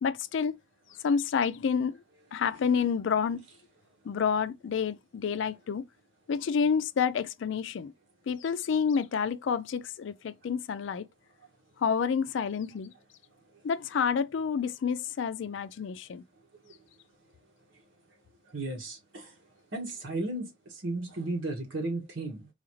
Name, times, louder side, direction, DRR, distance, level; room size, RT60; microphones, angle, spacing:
voice 1, 0.0-0.6 1.0-2.0 2.3-3.4 4.0-5.9 6.3-7.9 8.3-11.1 11.8-12.9 13.6-16.2, left 6 dB, 80° left, 0.4 m, -29 dB
voice 2, 18.5-19.4 19.7-22.5, right 2 dB, 90° right, 1.3 m, -35 dB
4.0 x 2.5 x 3.0 m
head